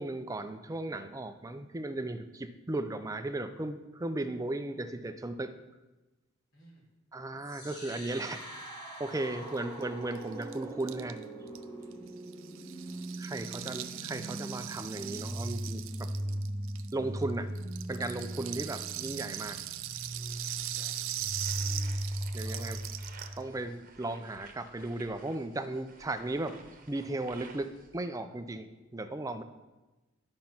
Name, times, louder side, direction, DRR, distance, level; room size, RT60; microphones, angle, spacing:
voice 1, 0.0-5.5 7.1-8.4 9.0-11.2 13.2-16.1 16.9-17.5 17.9-19.6 22.3-22.8 23.4-26.5 26.9-29.4, right 2 dB, 15° right, 9 dB, 0.5 m, -36 dB
voice 2, 6.5-6.8 9.3-9.7 11.8-12.1 12.5-12.9 13.3-13.9 18.6-18.8 20.5-21.5 22.3-22.7, equal, 70° left, -5 dB, 3.8 m, -55 dB
sound 1, 7.4-23.4, right 1 dB, 20° left, 3.5 m, -39 dB
Rattle (instrument), 9.5-9.6 9.8-9.9 10.1-17.2 17.6-23.4, right 13 dB, 70° right, 0.5 m, -40 dB
sound 2, 21.2-28.0, right 4 dB, 45° right, 1.0 m, -55 dB
10.5 x 5.3 x 5.9 m, 1.1 s
head